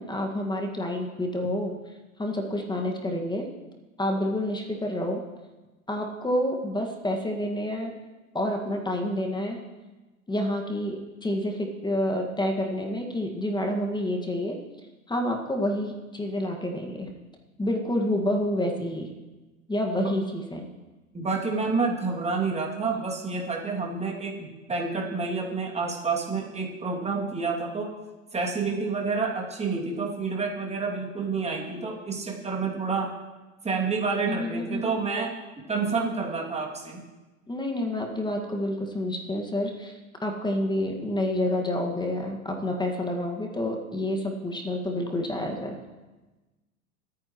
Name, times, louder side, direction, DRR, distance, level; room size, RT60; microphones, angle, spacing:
voice 1, 0.0-1.7 2.2-3.5 4.0-5.2 5.9-7.9 8.3-9.6 10.3-14.6 15.1-17.1 17.6-19.1 19.7-20.7 34.3-35.0 37.5-45.8, left 1 dB, 10° left, 2 dB, 1.9 m, -28 dB
voice 2, 21.1-27.9 28.3-33.1 33.6-35.3 35.7-37.0, right 4 dB, 15° right, -2 dB, 2.7 m, -29 dB
24.0 x 9.6 x 3.1 m, 1.2 s
hypercardioid pair, 100°, 42 cm